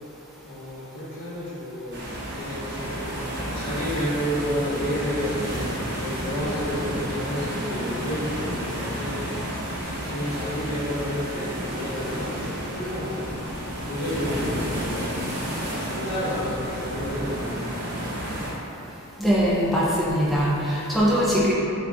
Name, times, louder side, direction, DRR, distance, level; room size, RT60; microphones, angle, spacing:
voice 1, 0.4-3.0 3.5-5.7 5.9-9.2 10.0-13.3 13.8-15.1 15.7-18.1, equal, 85° left, -10 dB, 1.3 m, -31 dB
sound 1, 1.9-18.5, equal, 50° right, 0.7 m, -31 dB
voice 2, 19.2-21.5, equal, ahead, -7 dB, 0.3 m, -21 dB
3.4 x 2.5 x 3.5 m, 2.9 s
head